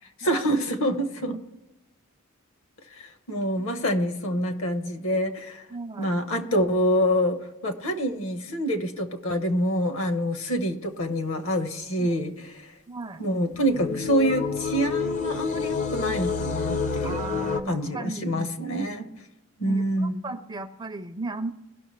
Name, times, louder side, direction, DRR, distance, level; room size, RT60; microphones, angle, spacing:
voice 1, 0.2-1.4 3.0-5.6 6.0-12.7 13.2-17.2 17.7-19.1 19.6-20.2, equal, 60° left, 8 dB, 1.0 m, -26 dB
voice 2, 5.7-6.2 12.0-12.1 12.9-13.2 17.0-18.4 19.6-21.5, right 3 dB, 20° right, 8 dB, 0.4 m, -36 dB
sound 1, 13.5-17.6, left 5 dB, 35° left, 0.5 m, -28 dB
17.5 x 6.2 x 3.1 m, 1.0 s
head